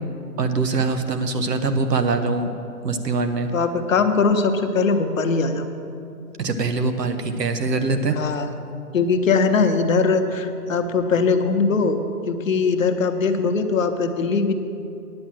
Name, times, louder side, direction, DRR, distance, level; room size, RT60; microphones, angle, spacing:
voice 1, 0.4-2.5 2.8-3.5 6.4-8.3, right 3 dB, 85° right, 8 dB, 1.2 m, -23 dB
voice 2, 3.5-5.7 8.2-8.5 8.9-12.0 12.3-14.5, left 4 dB, 55° left, 7 dB, 0.9 m, -20 dB
9.6 x 7.4 x 7.6 m, 2.6 s
hypercardioid pair, 170°, 48 cm